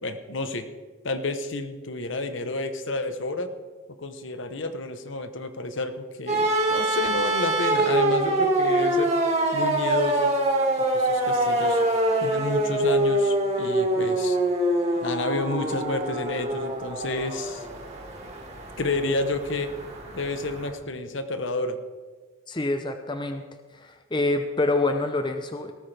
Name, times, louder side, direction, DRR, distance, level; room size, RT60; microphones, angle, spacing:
voice 1, 0.0-0.6 1.0-3.5 4.0-9.1 9.5-10.3 10.8-11.8 12.2-14.4 15.0-17.6 18.8-19.7 20.1-21.8, left 2 dB, 65° left, 8 dB, 1.1 m, -30 dB
sound 1, 6.3-20.7, right 1 dB, 30° right, 2.0 m, -25 dB
voice 2, 22.5-23.4 23.8-25.7, left 2 dB, 20° left, 7 dB, 0.7 m, -26 dB
19.0 x 14.0 x 3.5 m, 1.4 s
head